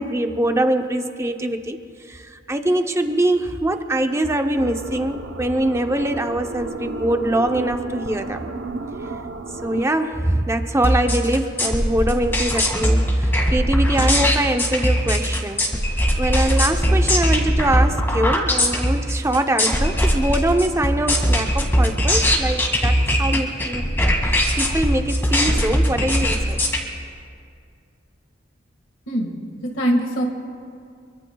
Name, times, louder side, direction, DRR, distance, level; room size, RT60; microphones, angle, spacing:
voice 1, 0.0-1.8 2.0-8.5 9.6-26.6, right 1 dB, 15° right, 6 dB, 0.7 m, -23 dB
sound 1, 4.6-9.9, right 3 dB, 85° right, 0.8 m, -32 dB
sound 2, 10.8-26.8, equal, 10° left, 2.1 m, -20 dB
voice 2, 29.1-30.3, equal, 80° left, 1 dB, 1.8 m, -23 dB
26.0 x 23.5 x 2.3 m, 2.3 s
head